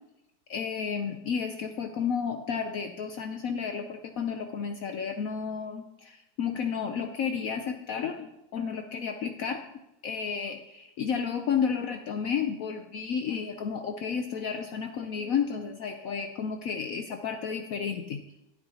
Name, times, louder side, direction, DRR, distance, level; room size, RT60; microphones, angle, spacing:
voice 1, 0.5-9.6 10.0-18.2, left 6 dB, 75° left, 5 dB, 0.7 m, -32 dB
11.5 x 9.5 x 2.8 m, 0.92 s
omnidirectional pair, 2.1 m